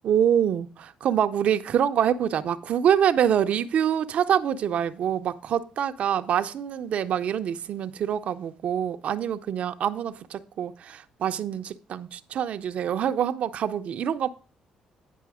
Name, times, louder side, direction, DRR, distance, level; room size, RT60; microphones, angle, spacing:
voice 1, 0.0-14.3, right 9 dB, 60° right, 0.5 m, -25 dB
9.3 x 5.5 x 4.8 m
cardioid pair, 95°, 2 cm